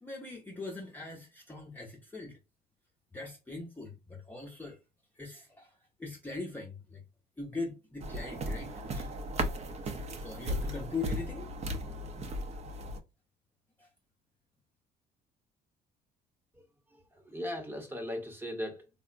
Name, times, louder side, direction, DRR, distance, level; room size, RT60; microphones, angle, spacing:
voice 1, 0.0-2.4 3.1-4.8 5.2-7.0 7.4-9.1 9.8-11.6 13.8-13.9, left 3 dB, 10° left, 0.6 m, -41 dB
sound 1, 8.0-13.0, equal, 40° right, 0.5 m, -36 dB
voice 2, 16.5-18.9, equal, 10° right, 0.9 m, -39 dB
3.5 x 2.0 x 2.4 m
cardioid pair, 110°, 17 cm